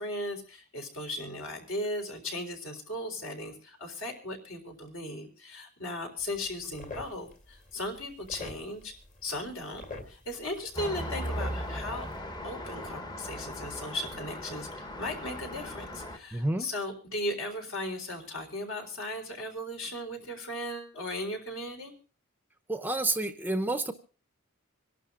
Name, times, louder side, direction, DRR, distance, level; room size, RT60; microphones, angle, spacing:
voice 1, 0.0-8.9 9.2-12.1 12.4-21.9, left 1 dB, 65° left, 4 dB, 3.9 m, -37 dB
sound 1, 6.2-12.2, left 3 dB, 40° left, 2.3 m, -47 dB
Traffic noise roadway noise, 10.8-16.2, equal, 20° left, 1.1 m, -38 dB
voice 2, 16.3-16.7 22.7-23.9, right 2 dB, 10° right, 10 dB, 0.7 m, -29 dB
26.5 x 11.5 x 2.5 m, 0.38 s
head